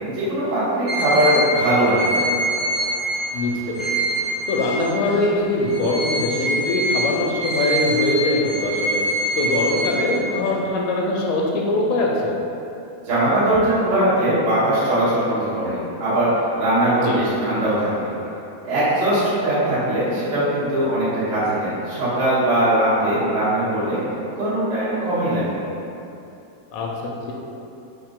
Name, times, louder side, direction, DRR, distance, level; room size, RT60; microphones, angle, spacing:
voice 1, 0.1-2.3 13.0-18.1 18.6-24.0 24.3-25.6, right 1 dB, 70° right, -13 dB, 1.2 m, -20 dB
sound 1, 0.9-5.2 5.7-10.5, right 1 dB, 90° right, 1.0 m, -25 dB
voice 2, 3.3-3.9 4.5-9.0 9.4-12.4 17.0-17.3 26.7-26.9, left 2 dB, 85° left, -1 dB, 2.5 m, -22 dB
5.7 x 2.6 x 3.7 m, 2.8 s
omnidirectional pair, 4.4 m